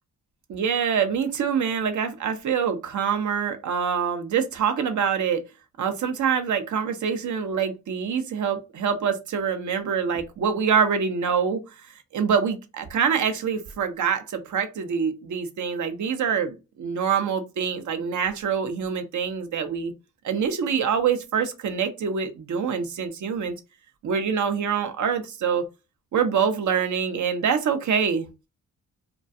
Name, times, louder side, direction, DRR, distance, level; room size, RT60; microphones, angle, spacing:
voice 1, 0.5-5.4 5.8-11.6 12.1-19.9 20.2-23.5 24.0-25.6 26.1-28.3, right 7 dB, 55° right, 0.6 m, -25 dB
2.3 x 2.2 x 2.5 m
supercardioid pair, 55°, 35 cm